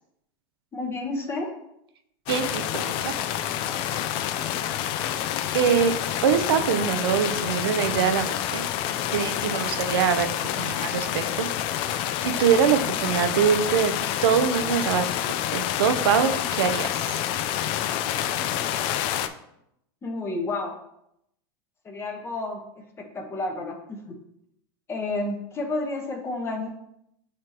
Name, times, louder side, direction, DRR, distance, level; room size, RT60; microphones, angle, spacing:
voice 1, 0.7-1.5 20.0-20.8 21.8-24.2 24.9-26.7, left 2 dB, 20° left, 2 dB, 1.2 m, -31 dB
sound 1, 2.3-19.3, left 11 dB, 45° left, 0.5 m, -28 dB
voice 2, 2.3-3.1 5.5-5.9 6.2-8.6 9.1-11.5 12.2-13.9 14.2-15.0 15.5-17.2, right 7 dB, 80° right, 9 dB, 0.7 m, -23 dB
9.4 x 3.7 x 2.9 m, 0.78 s
supercardioid pair, 135°, 13 cm